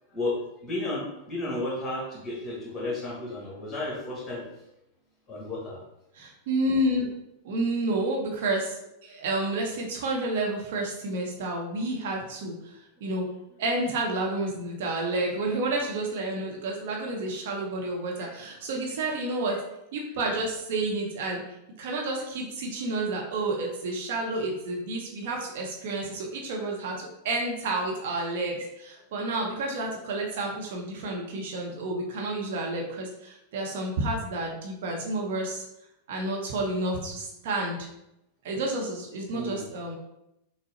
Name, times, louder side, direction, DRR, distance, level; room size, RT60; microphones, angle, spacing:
voice 1, 0.1-4.5 5.3-5.8 18.2-18.3 39.3-39.7, left 2 dB, 20° left, -3 dB, 1.4 m, -33 dB
voice 2, 6.1-7.1 7.4-8.8 9.0-13.2 13.6-19.6 19.9-21.4 21.8-27.0 27.2-35.6 36.1-37.8 38.4-40.0, right 2 dB, 55° right, -1 dB, 0.8 m, -30 dB
6.0 x 2.1 x 2.7 m, 0.84 s
figure-of-eight pair, 90°, 0 cm